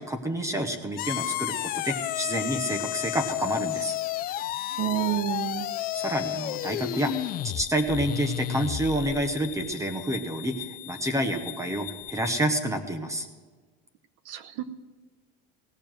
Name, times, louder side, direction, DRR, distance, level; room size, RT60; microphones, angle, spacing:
voice 1, 0.0-3.9 5.9-7.1 7.4-13.3, right 1 dB, 10° right, 8 dB, 0.9 m, -29 dB
sound 1, 1.0-12.5, left 14 dB, 30° left, 0.4 m, -33 dB
voice 2, 4.8-5.7 14.3-14.6, right 13 dB, 60° right, 12 dB, 1.1 m, -29 dB
17.5 x 6.9 x 7.6 m, 1.4 s
cardioid pair, 150°, 30 cm